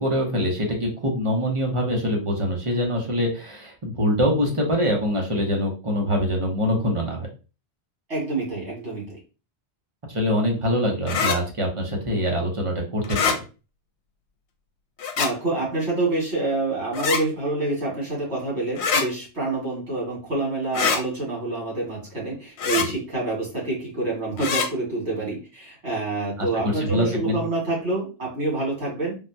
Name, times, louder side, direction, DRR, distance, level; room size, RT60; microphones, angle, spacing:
voice 1, 0.0-7.3 10.1-13.4 22.8-22.9 26.4-27.4, equal, 30° right, 0 dB, 0.8 m, -24 dB
voice 2, 8.1-9.2 15.2-29.2, right 2 dB, 75° right, -5 dB, 2.1 m, -27 dB
sound 1, 11.1-11.4 13.0-13.4 15.0-15.3 16.9-17.2 18.8-19.0 20.7-21.0 22.6-22.9 24.4-24.7, left 5 dB, 85° left, 0.9 m, -23 dB
3.5 x 2.2 x 2.6 m, 0.33 s
omnidirectional pair, 1.1 m